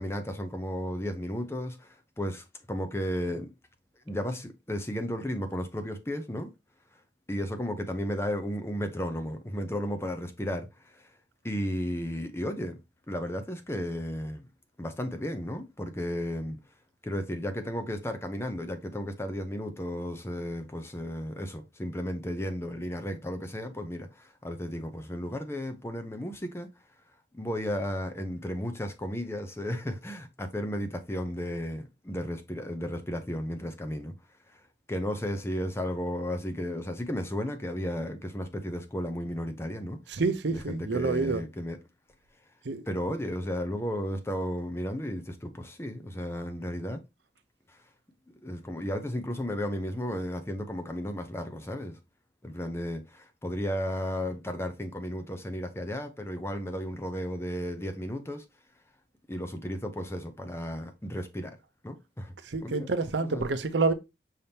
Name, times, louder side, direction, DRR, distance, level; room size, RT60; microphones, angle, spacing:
voice 1, 0.0-3.5 4.1-6.5 7.3-11.0 11.4-12.8 13.1-14.5 14.8-16.6 17.0-26.7 27.3-34.1 34.5-34.6 34.9-40.0 40.5-41.8 42.9-47.0 48.4-52.0 52.4-58.4 59.3-61.6 61.8-62.3 62.6-62.9 63.2-63.5, equal, 15° left, 0.6 m, -34 dB
voice 2, 40.1-41.4 42.7-42.8 62.5-63.9, right 3 dB, 75° right, 0.6 m, -28 dB
5.6 x 3.5 x 2.7 m
head